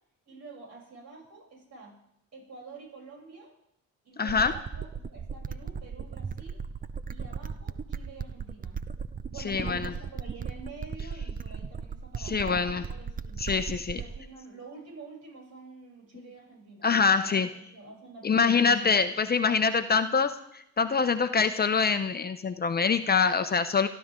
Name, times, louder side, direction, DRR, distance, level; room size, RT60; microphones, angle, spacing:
voice 1, 0.3-2.0 2.3-3.5 4.0-6.6 7.1-8.8 9.3-13.4 13.9-18.7, right 3 dB, 60° right, -2 dB, 7.7 m, -48 dB
voice 2, 4.2-4.5 9.4-9.9 12.2-12.8 13.4-14.0 16.8-17.5 18.2-23.9, left 5 dB, 30° left, 10 dB, 0.8 m, -25 dB
sound 1, 4.3-14.3, right 6 dB, 30° right, 0.6 m, -37 dB
24.5 x 12.0 x 3.8 m, 0.76 s
cardioid pair, 90°, 30 cm